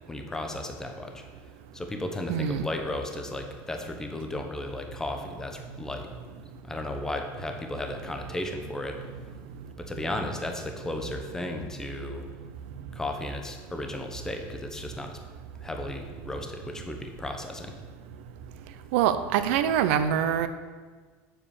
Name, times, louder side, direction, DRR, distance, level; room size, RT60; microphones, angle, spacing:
voice 1, 0.1-1.3 1.7-6.1 6.6-9.4 9.8-12.3 12.9-15.2 15.6-17.7, left 1 dB, 10° left, 4 dB, 0.9 m, -35 dB
voice 2, 2.3-2.7 18.9-20.5, right 9 dB, 85° right, 10 dB, 0.6 m, -24 dB
7.5 x 4.8 x 7.0 m, 1.4 s
cardioid pair, 150°, 6 cm